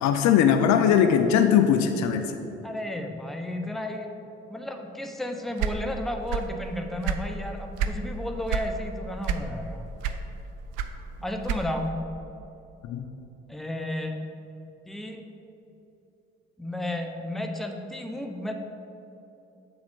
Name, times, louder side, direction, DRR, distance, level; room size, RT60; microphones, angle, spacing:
voice 1, 0.0-2.3 12.9-13.0, left 8 dB, 60° left, 7 dB, 0.5 m, -20 dB
voice 2, 2.6-4.1 4.5-9.9 11.2-12.0 13.5-14.3 14.9-15.2 16.6-18.5, left 1 dB, ahead, 4 dB, 0.7 m, -33 dB
sound 1, 5.6-6.6 6.9-8.0 8.5-8.8 9.2-9.7 10.0-11.9, right 7 dB, 70° right, 0.4 m, -28 dB
7.6 x 4.7 x 3.6 m, 2.9 s
hypercardioid pair, 40°, 32 cm